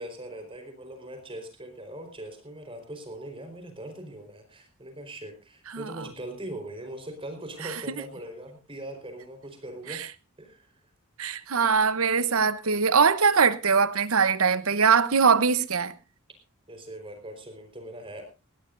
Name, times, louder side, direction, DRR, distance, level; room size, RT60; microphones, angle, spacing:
voice 1, 0.0-10.1 10.4-10.7 16.7-18.2, right 1 dB, 25° right, 4.5 m, -41 dB
voice 2, 11.2-15.9, right 5 dB, 85° right, 1.0 m, -22 dB
20.0 x 17.0 x 2.6 m
head